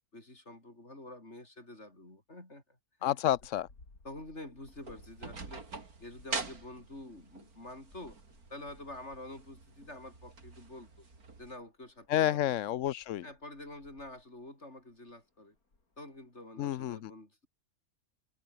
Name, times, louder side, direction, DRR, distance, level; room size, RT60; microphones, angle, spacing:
voice 1, 0.1-3.2 4.0-5.7 6.0-8.2 8.5-11.1 11.4-12.6 13.2-15.6 16.0-17.5, left 1 dB, 50° left, 7.3 m, -48 dB
voice 2, 3.0-3.7 12.1-13.2 16.6-17.1, left 12 dB, 65° left, 0.9 m, -30 dB
sound 1, 3.3-16.5, left 3 dB, 85° left, 5.0 m, -64 dB
sound 2, 4.7-11.6, right 4 dB, 90° right, 3.7 m, -45 dB
omnidirectional pair, 1.5 m